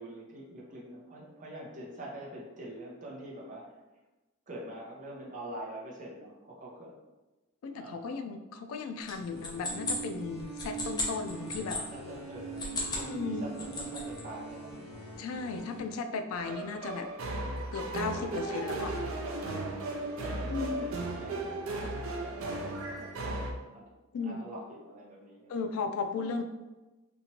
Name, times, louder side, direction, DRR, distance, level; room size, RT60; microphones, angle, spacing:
voice 1, 0.0-3.8 4.5-6.9 7.7-8.1 11.7-15.5 18.0-18.3 19.4-23.9 24.2-25.6, right 1 dB, 40° right, -4 dB, 0.7 m, -45 dB
voice 2, 7.6-11.8 13.1-13.5 15.2-17.1 17.7-18.9 20.5-20.9 24.1-24.4 25.5-26.4, left 4 dB, 90° left, 7 dB, 0.3 m, -35 dB
sound 1, 9.0-11.8 12.5-13.1 13.4-14.2, left 3 dB, 20° left, 0.6 m, -36 dB
sound 2, 9.3-15.8, right 5 dB, 35° left, 1.0 m, -42 dB
sound 3, 16.3-23.5, right 2 dB, 70° right, 0.4 m, -35 dB
3.0 x 2.4 x 2.8 m, 1.1 s
head